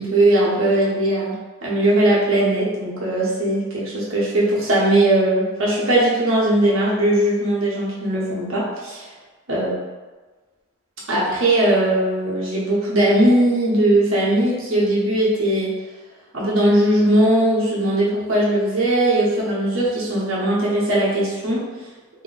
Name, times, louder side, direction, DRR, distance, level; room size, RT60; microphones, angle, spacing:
voice 1, 0.0-1.4 1.6-9.1 9.5-9.7 11.1-15.7 16.3-21.6, right 1 dB, 70° right, -6 dB, 0.9 m, -19 dB
2.7 x 2.1 x 3.8 m, 1.3 s
head